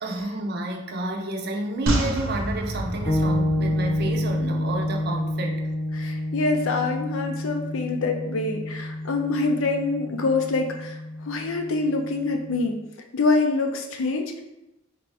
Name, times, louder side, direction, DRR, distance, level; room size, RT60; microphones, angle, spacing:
voice 1, 0.0-5.7, right 2 dB, 50° right, 2 dB, 0.5 m, -30 dB
sound 1, 1.9-5.3 5.6-5.7, equal, 80° right, 0.8 m, -29 dB
sound 2, 3.1-12.7, left 1 dB, 20° left, 0.4 m, -29 dB
voice 2, 5.9-11.0 11.3-12.8 13.1-14.4, left 3 dB, 80° left, 3 dB, 0.6 m, -25 dB
4.3 x 2.6 x 3.3 m, 0.93 s
head